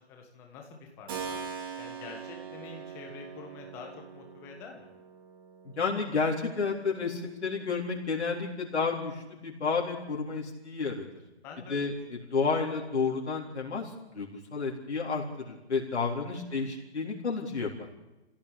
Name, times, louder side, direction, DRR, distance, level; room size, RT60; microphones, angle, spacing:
voice 1, 0.0-1.4 1.8-4.9 11.4-12.0 16.3-16.7, left 5 dB, 5° left, 2 dB, 1.5 m, -47 dB
Keyboard (musical), 1.1-9.7, right 6 dB, 20° right, 2.3 m, -44 dB
voice 2, 5.8-11.1 11.7-11.9 12.3-17.9, left 4 dB, 85° left, -1 dB, 4.1 m, -31 dB
26.5 x 16.0 x 8.5 m, 1.0 s
hypercardioid pair, 175°, 33 cm